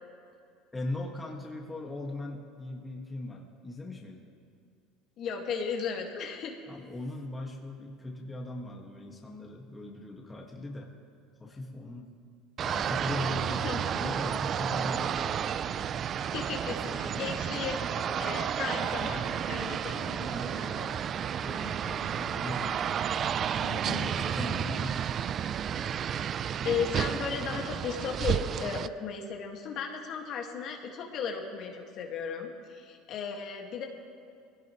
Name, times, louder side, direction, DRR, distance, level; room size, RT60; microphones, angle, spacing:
voice 1, 0.7-4.2 6.7-10.9 11.4-12.1 12.6-15.9 16.8-17.5 18.6-19.3 19.9-21.0 21.4-22.9 23.3-23.6 24.0-25.1, left 2 dB, 15° left, 0 dB, 1.7 m, -39 dB
voice 2, 5.2-6.6 13.5-13.8 16.2-17.8 18.2-20.3 20.5-20.7 23.6-24.1 26.6-33.9, left 6 dB, 55° left, 2 dB, 1.8 m, -35 dB
sound 1, 12.6-28.9, right 8 dB, 40° right, 0.4 m, -31 dB
20.0 x 16.0 x 3.1 m, 2.4 s
supercardioid pair, 105°, 0 cm